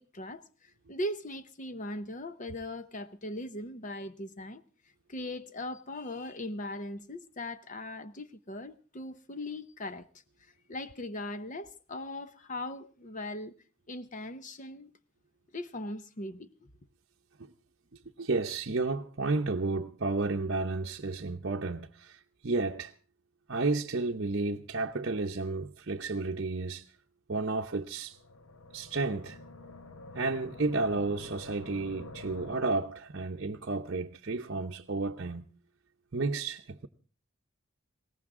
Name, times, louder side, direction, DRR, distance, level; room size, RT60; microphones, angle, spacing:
voice 1, 0.0-4.6 5.1-10.1 10.7-13.5 13.9-14.9 15.5-16.5, left 1 dB, 40° left, 0.8 m, -39 dB
voice 2, 18.2-22.9 23.5-26.8 27.3-28.2 28.7-29.4 30.1-35.5 36.1-36.9, right 3 dB, 55° right, 0.8 m, -32 dB
sound 1, 27.8-32.7, left 2 dB, 75° left, 1.1 m, -48 dB
21.0 x 17.5 x 3.7 m
head